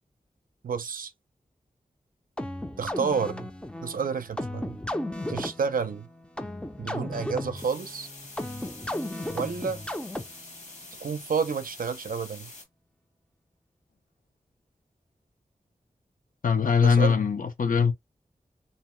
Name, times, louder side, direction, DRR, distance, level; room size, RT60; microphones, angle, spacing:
voice 1, 0.6-1.1 2.8-3.5 3.8-4.8 5.3-6.1 6.8-8.1 9.3-9.8 11.0-12.5 16.8-17.2, right 6 dB, 75° right, 0.5 m, -30 dB
sound 1, 2.4-10.6, left 1 dB, 5° left, 0.5 m, -35 dB
sound 2, 7.6-12.7, left 2 dB, 55° left, 1.1 m, -46 dB
voice 2, 16.4-17.9, left 6 dB, 70° left, 0.6 m, -22 dB
2.6 x 2.1 x 3.0 m
cardioid pair, 45°, 14 cm